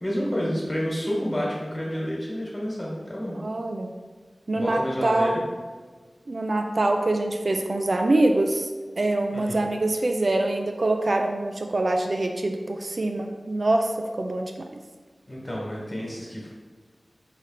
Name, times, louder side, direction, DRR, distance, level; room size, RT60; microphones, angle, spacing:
voice 1, 0.0-3.4 4.5-5.5 9.3-9.6 15.3-16.5, equal, 25° left, -4 dB, 1.4 m, -29 dB
voice 2, 3.4-3.9 4.5-5.3 6.3-8.7 9.0-14.5, right 2 dB, 60° right, 3 dB, 0.4 m, -24 dB
3.8 x 3.3 x 4.2 m, 1.5 s
wide cardioid pair, 75°, 0 cm